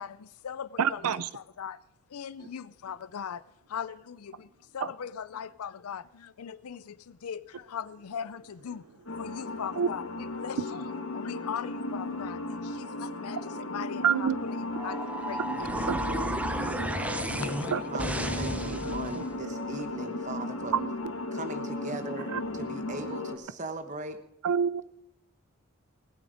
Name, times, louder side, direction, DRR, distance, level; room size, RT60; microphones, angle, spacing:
voice 1, 0.0-1.8 2.1-4.5 4.7-16.0 17.4-17.7 18.8-18.9, left 7 dB, 90° left, 0.5 m, -40 dB
voice 2, 0.8-1.3 4.8-4.9 9.8-9.9 14.0-14.4 15.5-15.6 15.9-16.0 16.6-17.4 17.7-17.8 18.7-19.2 20.7-20.9 22.3-22.4 24.4-24.8, right 7 dB, 90° right, 0.4 m, -28 dB
sound 1, 9.1-23.3, left 2 dB, 70° left, 2.0 m, -36 dB
sound 2, 14.7-19.3, right 1 dB, 5° right, 0.7 m, -33 dB
voice 3, 17.9-20.8 21.3-24.2, right 2 dB, 35° right, 1.0 m, -39 dB
19.5 x 8.5 x 5.0 m
head